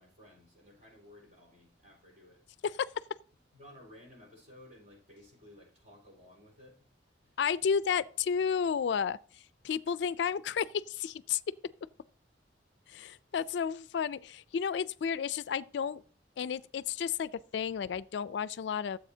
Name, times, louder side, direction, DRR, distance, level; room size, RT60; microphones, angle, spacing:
voice 1, 0.0-2.4 3.5-6.8 7.2-7.4, left 1 dB, 40° right, 4.2 m, -56 dB
voice 2, 7.4-9.2 9.6-11.4 12.9-16.0 16.4-19.0, left 7 dB, 75° left, 0.3 m, -32 dB
13.5 x 7.7 x 2.7 m
head